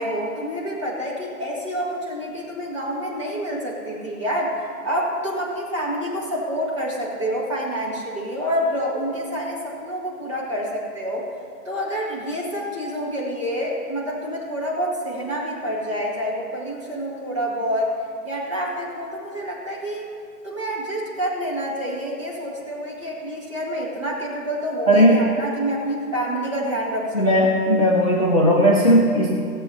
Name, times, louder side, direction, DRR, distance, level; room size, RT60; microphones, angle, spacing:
voice 1, 0.0-11.3 11.7-17.9 18.2-20.1 20.4-27.5, equal, 20° right, -6 dB, 1.8 m, -27 dB
voice 2, 24.9-25.2 27.1-29.3, equal, 20° left, -4 dB, 0.8 m, -16 dB
17.5 x 7.4 x 5.7 m, 2.5 s
hypercardioid pair, 175°, 47 cm